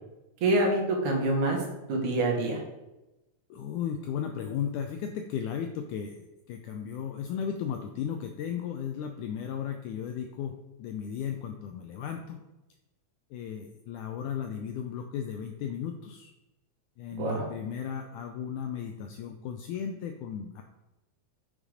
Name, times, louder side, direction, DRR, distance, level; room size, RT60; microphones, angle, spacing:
voice 1, 0.4-1.6 1.9-2.6 17.1-17.5, right 2 dB, 60° right, 0 dB, 2.8 m, -26 dB
voice 2, 3.5-10.5 10.8-12.4 13.3-16.3 17.0-20.6, left 8 dB, 80° left, 5 dB, 1.8 m, -35 dB
8.2 x 5.6 x 5.0 m, 0.99 s
omnidirectional pair, 4.1 m